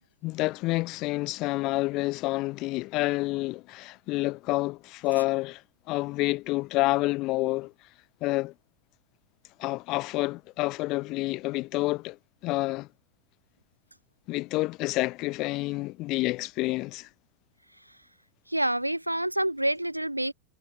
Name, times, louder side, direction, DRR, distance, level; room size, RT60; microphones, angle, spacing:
voice 1, 0.2-5.6 5.9-7.7 8.2-8.5 9.6-12.2 12.4-12.9 14.3-17.1, left 20 dB, 40° left, 0.4 m, -28 dB
voice 2, 18.5-20.3, right 1 dB, 85° right, 0.7 m, -27 dB
figure-of-eight pair, 90°, 0 cm